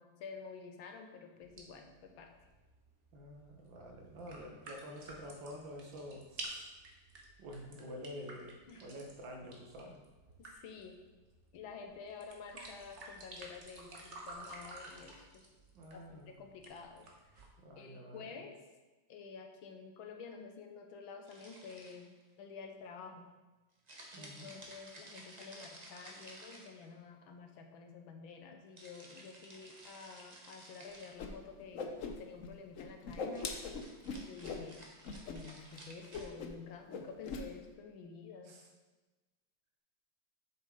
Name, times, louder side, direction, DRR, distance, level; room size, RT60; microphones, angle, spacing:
voice 1, 0.0-2.3 8.7-8.9 10.4-10.9 11.5-15.5 15.9-17.3 17.8-18.5 19.1-22.1 22.4-23.3 24.2-31.9 32.2-33.5 34.1-34.8 35.3-38.5, left 5 dB, 85° left, 4 dB, 1.7 m, -50 dB
sound 1, 1.4-17.5, right 2 dB, 45° right, 1.2 m, -52 dB
voice 2, 3.1-6.7 7.4-10.0 15.7-16.4 17.6-18.3 24.1-24.5 38.4-38.7, equal, 70° right, 2 dB, 1.9 m, -48 dB
sound 2, 21.2-22.2 23.9-27.1 28.8-31.2 33.2-36.3, right 1 dB, 25° right, 1.0 m, -54 dB
Whoosh swoosh swish, 31.2-31.3 31.6-32.5 32.7-34.6 35.0-35.4 35.6-35.8 36.1-36.6 36.9-37.4, left 4 dB, 60° left, 0.9 m, -41 dB
8.2 x 6.6 x 3.7 m, 1.2 s
omnidirectional pair, 2.2 m